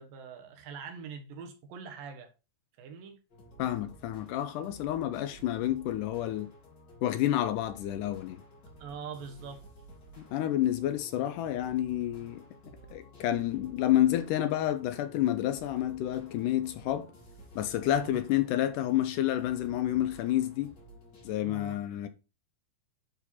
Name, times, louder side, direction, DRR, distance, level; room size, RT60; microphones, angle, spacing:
voice 1, 0.0-2.3 2.8-3.2 8.8-9.6 17.9-18.2 21.4-21.8, right 6 dB, 80° right, 2.9 m, -43 dB
sound 1, 3.3-21.3, right 1 dB, 35° left, 2.4 m, -53 dB
voice 2, 3.6-6.5 7.0-8.4 10.2-12.4 12.9-17.1 17.6-20.8 21.2-22.1, left 12 dB, 80° left, 2.0 m, -29 dB
9.8 x 4.3 x 4.1 m
omnidirectional pair, 4.0 m